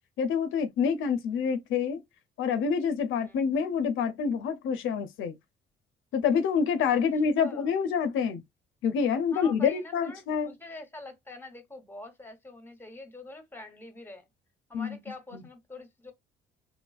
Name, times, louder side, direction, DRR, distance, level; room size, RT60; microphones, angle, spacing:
voice 1, 0.2-2.0 2.4-5.4 6.1-8.4 8.8-10.5 14.7-15.0 15.3-15.4, left 6 dB, 80° left, 0.6 m, -27 dB
voice 2, 7.4-7.7 9.3-14.3 14.7-16.1, left 2 dB, 10° left, 1.0 m, -45 dB
3.1 x 2.3 x 2.3 m
cardioid pair, 90°, 20 cm